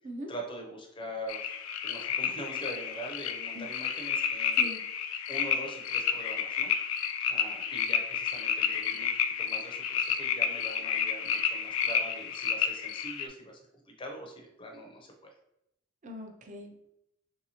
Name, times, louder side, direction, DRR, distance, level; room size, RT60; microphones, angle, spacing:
voice 1, 0.3-4.7 5.3-6.7 7.3-13.6 13.9-15.3, right 1 dB, 25° left, 2 dB, 0.5 m, -43 dB
sound 1, 1.3-13.3, left 7 dB, 85° left, 0.3 m, -31 dB
voice 2, 16.0-16.9, left 1 dB, 35° right, 2 dB, 0.5 m, -41 dB
3.2 x 2.7 x 2.8 m, 0.82 s
head